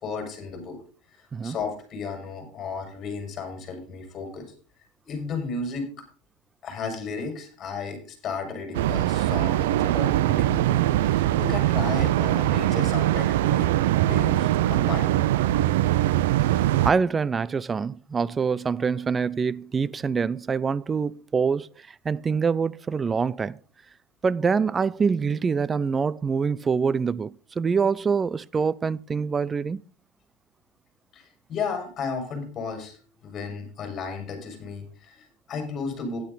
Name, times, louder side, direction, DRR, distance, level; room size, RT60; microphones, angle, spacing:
voice 1, 0.0-0.8 1.4-4.5 5.1-5.9 6.6-15.1 31.1-36.2, left 4 dB, 35° left, 5.3 m, -34 dB
sound 1, 8.7-16.9, right 14 dB, 80° right, 0.5 m, -22 dB
voice 2, 16.8-21.7 22.0-23.6 24.2-29.8, right 5 dB, 20° right, 0.4 m, -25 dB
12.0 x 10.5 x 3.9 m
supercardioid pair, 115°, 0 cm